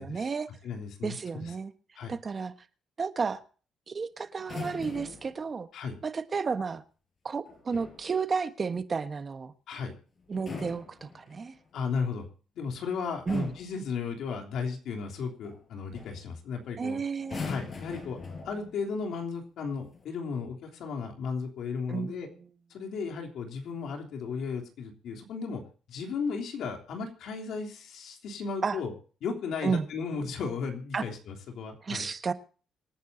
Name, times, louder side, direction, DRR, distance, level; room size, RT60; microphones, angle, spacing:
voice 1, 0.0-0.5 1.0-1.7 2.1-2.5 3.0-3.4 3.9-5.7 6.0-6.8 7.2-9.5 10.3-11.5 13.3-13.5 16.8-17.5 21.9-22.5 28.6-28.8 29.6-29.9 30.9-31.0 31.8-32.3, right 5 dB, 40° right, 1.3 m, -32 dB
voice 2, 0.6-1.5 1.9-2.1 5.7-5.9 9.7-9.9 11.7-12.3 12.5-17.0 17.4-18.2 18.4-22.3 22.7-25.6 25.9-28.9 29.2-32.1, left 5 dB, 75° left, 3.3 m, -35 dB
sound 1, 4.4-5.4 7.5-8.1 10.2-11.6 12.6-12.9 13.3-13.8 15.4-15.6 15.9-16.2 17.2-18.9 19.8-20.0, left 4 dB, 45° left, 4.8 m, -41 dB
26.0 x 9.4 x 2.8 m
cardioid pair, 90°, 0 cm